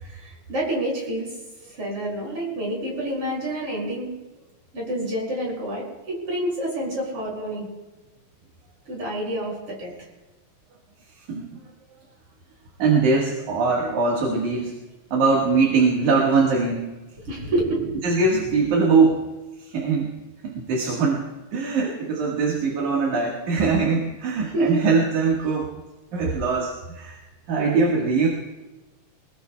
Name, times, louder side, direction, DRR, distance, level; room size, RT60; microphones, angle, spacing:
voice 1, 0.0-1.4 1.7-4.1 4.7-7.7 8.9-9.9 17.2-18.0 24.5-24.8, right 1 dB, 40° right, -3 dB, 6.8 m, -28 dB
voice 2, 11.3-11.6 12.8-14.7 15.1-16.9 18.0-19.3 19.6-20.1 20.4-21.3 21.5-25.8 26.1-27.2 27.5-28.3, right 4 dB, 65° right, -2 dB, 3.0 m, -22 dB
25.0 x 20.0 x 2.3 m, 1.1 s
omnidirectional pair, 3.8 m